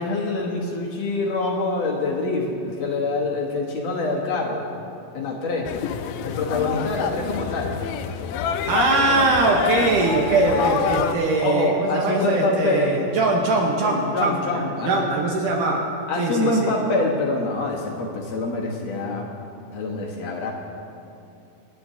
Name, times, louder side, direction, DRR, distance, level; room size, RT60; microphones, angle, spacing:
voice 1, 0.0-4.6 5.1-5.7 6.2-7.7 11.4-13.1 13.8-15.1 16.1-19.3 19.7-20.5, left 2 dB, 60° left, -1 dB, 2.2 m, -25 dB
sound 1, 5.7-11.1, left 8 dB, 80° left, 2.2 m, -27 dB
voice 2, 8.7-15.9 16.2-16.7, right 3 dB, 70° right, -1 dB, 2.5 m, -21 dB
27.5 x 11.0 x 2.8 m, 2.7 s
omnidirectional pair, 3.9 m